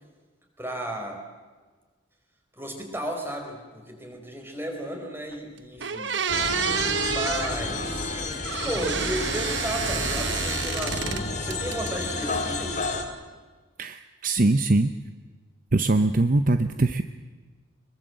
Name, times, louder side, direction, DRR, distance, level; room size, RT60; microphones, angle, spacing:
voice 1, 0.6-1.2 2.5-6.1 7.0-8.1 8.6-12.8, right 1 dB, 10° right, 3 dB, 4.4 m, -34 dB
sound 1, 5.3-5.4 5.8-7.5 8.4-11.2 11.5-12.2, right 7 dB, 70° right, 1.1 m, -29 dB
sound 2, 6.3-13.0, left 3 dB, 40° left, 2.4 m, -30 dB
voice 2, 13.8-15.0 15.7-17.0, right 2 dB, 45° right, 10 dB, 0.7 m, -22 dB
23.5 x 22.0 x 7.8 m, 1.4 s
head